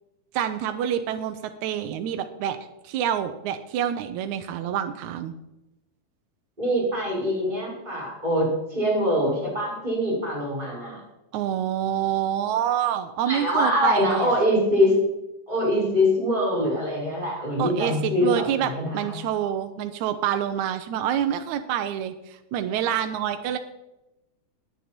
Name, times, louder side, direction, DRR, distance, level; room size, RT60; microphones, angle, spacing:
voice 1, 0.3-2.6 2.8-5.3 11.3-14.4 17.6-23.6, right 10 dB, 75° right, 7 dB, 2.0 m, -27 dB
voice 2, 6.6-11.0 13.3-14.9 15.5-19.2, equal, 15° right, -3 dB, 5.9 m, -24 dB
19.5 x 8.7 x 4.4 m, 0.93 s
omnidirectional pair, 3.8 m